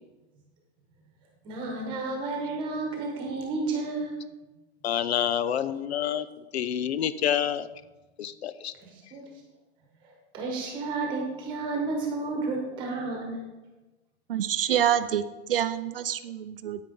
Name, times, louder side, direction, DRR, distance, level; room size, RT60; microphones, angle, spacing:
voice 1, 1.4-4.2 8.8-9.2 10.3-13.4, right 3 dB, 15° right, 1 dB, 1.2 m, -31 dB
voice 2, 4.8-6.3 6.5-7.7 8.2-8.7, left 9 dB, 70° left, 15 dB, 0.6 m, -27 dB
voice 3, 14.3-15.2 15.5-16.8, right 10 dB, 55° right, 12 dB, 0.5 m, -26 dB
9.3 x 8.9 x 3.8 m, 1.1 s
hypercardioid pair, 180°, 33 cm